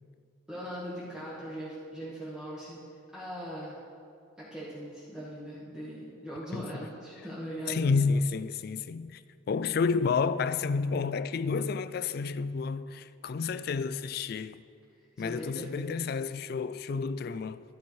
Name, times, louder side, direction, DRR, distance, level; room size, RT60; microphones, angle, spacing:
voice 1, 0.5-2.8 3.1-3.8 4.4-7.9 15.2-15.9, equal, 5° right, 1.4 m, -40 dB
voice 2, 7.7-9.2 9.5-14.6 15.2-17.6, left 5 dB, 50° left, 0.3 m, -30 dB
13.0 x 11.5 x 3.2 m
head